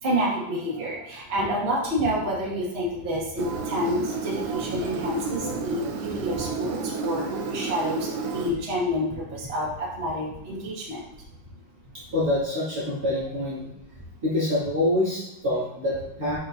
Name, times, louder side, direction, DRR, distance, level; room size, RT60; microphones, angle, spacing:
voice 1, 0.0-11.0, equal, 60° right, -6 dB, 0.6 m, -28 dB
Engine, 3.4-8.5, right 5 dB, 80° right, 2.8 m, -31 dB
voice 2, 12.1-13.6 14.2-16.4, left 1 dB, 30° right, -10 dB, 2.0 m, -26 dB
7.7 x 5.4 x 2.7 m, 0.87 s
omnidirectional pair, 4.6 m